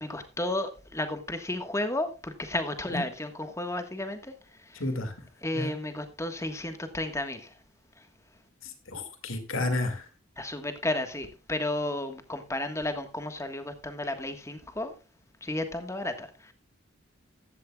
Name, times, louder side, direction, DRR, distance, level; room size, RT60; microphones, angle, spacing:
voice 1, 0.0-4.3 4.6-4.8 5.4-7.5 8.0-8.1 10.4-14.9 15.4-16.5, left 1 dB, 15° left, 7 dB, 1.4 m, -33 dB
voice 2, 4.8-5.1 5.5-5.7 8.6-10.1, left 2 dB, 80° left, 7 dB, 2.2 m, -31 dB
15.0 x 12.5 x 2.3 m, 0.31 s
head